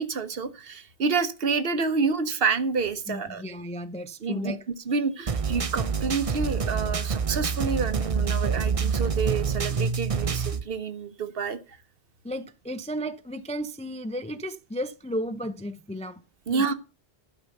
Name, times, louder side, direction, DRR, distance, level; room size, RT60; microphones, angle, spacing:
voice 1, 0.0-3.4 4.2-4.5 4.9-11.6 16.5-16.7, right 5 dB, 60° right, 1.1 m, -28 dB
voice 2, 3.1-4.6 12.2-16.2 16.5-16.7, equal, 10° left, 0.3 m, -34 dB
sound 1, 5.3-10.6, right 5 dB, 35° right, 0.7 m, -27 dB
12.0 x 5.6 x 6.5 m
omnidirectional pair, 1.1 m